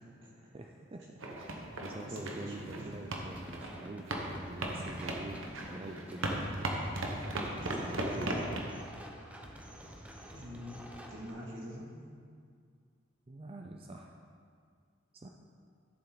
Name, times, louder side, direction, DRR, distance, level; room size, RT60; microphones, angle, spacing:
voice 1, 0.4-6.3 7.5-8.6 13.3-14.1 15.1-15.3, right 2 dB, 30° right, 2 dB, 0.4 m, -45 dB
sound 1, 1.2-8.7, right 1 dB, 85° right, 1.1 m, -38 dB
voice 2, 2.0-2.8 7.6-8.4 10.3-10.8 11.1-11.9, equal, 70° right, -4 dB, 2.3 m, -44 dB
sound 2, 3.4-11.3, equal, 5° right, 0.8 m, -49 dB
11.5 x 7.1 x 4.0 m, 2.2 s
head